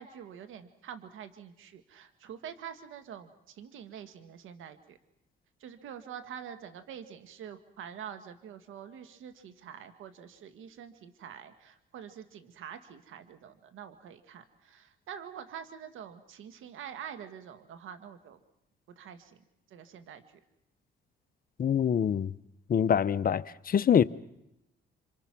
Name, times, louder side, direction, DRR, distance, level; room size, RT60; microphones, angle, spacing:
voice 1, 0.0-5.0 5.6-18.4 19.0-19.4 19.7-20.4, right 8 dB, 80° right, 1.8 m, -46 dB
voice 2, 21.6-22.3 22.7-24.0, left 8 dB, 45° left, 0.9 m, -25 dB
28.0 x 25.5 x 6.1 m
cardioid pair, 90°, 20 cm